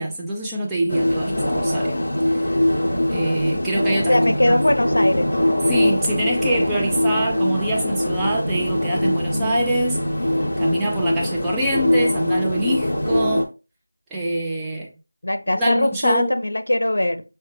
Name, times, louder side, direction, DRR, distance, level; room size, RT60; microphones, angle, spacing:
voice 1, 0.0-2.0 2.4-2.5 3.1-4.2 4.5-4.6 5.6-10.1 10.6-13.5 14.1-14.9 15.5-16.3, right 1 dB, 5° right, 0.4 m, -25 dB
sound 1, 0.9-13.4, left 1 dB, 30° left, 0.8 m, -22 dB
voice 2, 4.1-5.3 9.3-9.6 15.2-17.2, left 1 dB, 70° left, 0.6 m, -21 dB
5.5 x 2.1 x 3.1 m
figure-of-eight pair, 175°, 0 cm